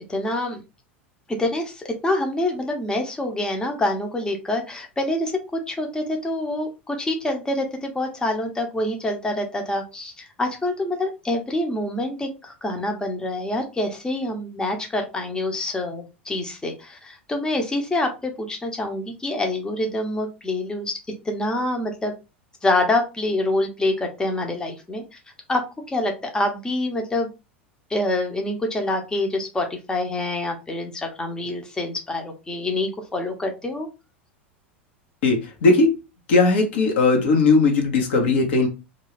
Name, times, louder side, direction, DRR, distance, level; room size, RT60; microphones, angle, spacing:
voice 1, 0.1-0.6 1.4-21.0 21.2-22.1 22.6-25.2 25.5-27.3 27.9-33.9, left 1 dB, 10° left, 3 dB, 0.7 m, -26 dB
voice 2, 35.2-35.9 36.3-38.7, left 3 dB, 65° left, 2 dB, 0.8 m, -18 dB
2.5 x 2.3 x 3.2 m, 0.27 s
hypercardioid pair, 85°, 7 cm